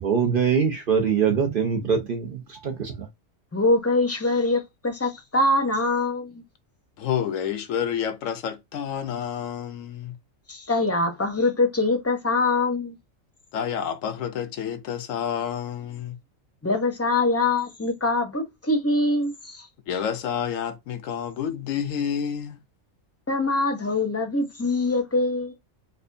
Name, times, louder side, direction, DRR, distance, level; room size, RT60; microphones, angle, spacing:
voice 1, 0.0-3.1, right 6 dB, 50° right, 0.7 m, -23 dB
voice 2, 3.5-6.4 10.5-13.0 16.6-19.7 23.3-25.5, left 2 dB, 15° left, 0.6 m, -23 dB
voice 3, 7.0-10.2 13.5-16.2 19.9-22.6, left 8 dB, 75° left, 1.0 m, -29 dB
4.3 x 2.4 x 2.5 m
omnidirectional pair, 1.4 m